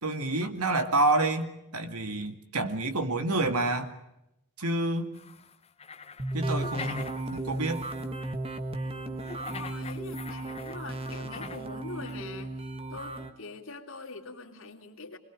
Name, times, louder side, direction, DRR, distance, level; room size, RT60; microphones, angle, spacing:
voice 1, 0.0-3.9 4.6-5.1 6.3-7.8, right 2 dB, 90° right, 8 dB, 2.3 m, -28 dB
sound 1, 5.1-8.3 9.2-11.7 12.0-12.2, left 5 dB, 30° left, 0.9 m, -44 dB
sound 2, 6.2-13.3, right 2 dB, 25° right, 1.6 m, -35 dB
voice 2, 9.4-15.2, left 3 dB, 60° left, 3 dB, 2.9 m, -43 dB
27.0 x 21.5 x 6.3 m, 0.84 s
head